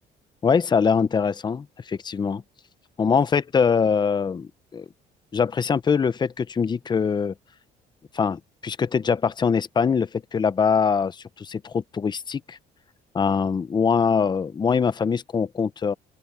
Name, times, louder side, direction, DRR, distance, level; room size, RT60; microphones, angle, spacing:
voice 1, 0.4-2.4 3.0-4.9 5.3-7.3 8.1-12.6 13.1-15.9, left 6 dB, 25° left, 0.7 m, -23 dB
open air
cardioid pair, 110°, 17 cm